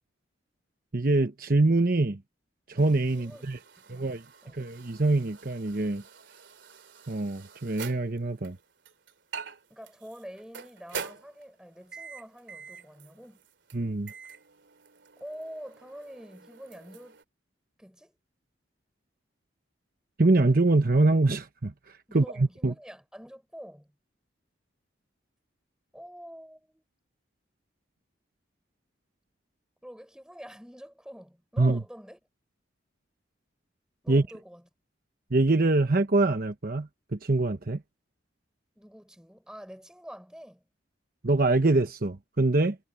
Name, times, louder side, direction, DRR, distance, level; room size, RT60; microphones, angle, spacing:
voice 1, 0.9-2.2 2.7-3.6 3.9-4.2 4.5-6.0 7.1-8.6 13.7-14.1 20.2-22.7 31.6-31.8 34.1-34.3 35.3-37.8 41.2-42.8, right 2 dB, 50° right, 1.0 m, -24 dB
sound 1, 2.8-17.2, right 6 dB, 75° right, 2.9 m, -46 dB
voice 2, 3.1-3.5 3.8-4.6 9.7-13.4 15.2-17.2 17.8-18.2 22.1-23.9 25.9-26.8 29.8-32.2 34.0-34.6 38.8-40.6, equal, 5° right, 4.7 m, -46 dB
head